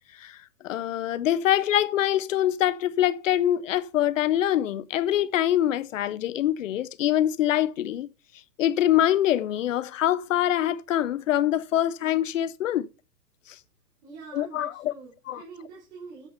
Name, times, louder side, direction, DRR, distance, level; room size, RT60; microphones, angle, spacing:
voice 1, 0.6-8.1 8.6-12.9 14.3-14.7 15.3-15.4, left 12 dB, 55° left, 0.6 m, -24 dB
voice 2, 14.0-16.3, right 4 dB, 45° right, 4.2 m, -45 dB
8.2 x 6.9 x 5.5 m
hypercardioid pair, 165°, 48 cm